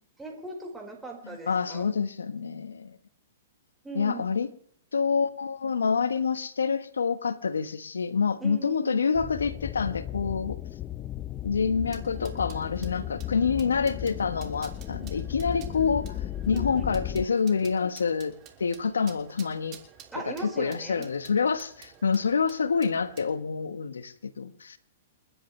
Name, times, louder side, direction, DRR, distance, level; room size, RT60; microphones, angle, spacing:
voice 1, 0.2-1.9 3.8-4.3 8.4-9.0 16.5-16.9 20.1-21.0, right 3 dB, 10° right, 4.8 m, -39 dB
voice 2, 1.2-3.0 3.9-4.5 4.9-10.6 11.4-16.1 16.5-18.3 18.6-19.8 20.2-24.8, left 5 dB, 90° left, 1.2 m, -27 dB
sound 1, 9.1-17.3, left 12 dB, 30° left, 0.6 m, -36 dB
sound 2, 11.9-23.3, right 9 dB, 35° right, 2.9 m, -52 dB
29.5 x 10.0 x 3.3 m
hypercardioid pair, 125°, 0 cm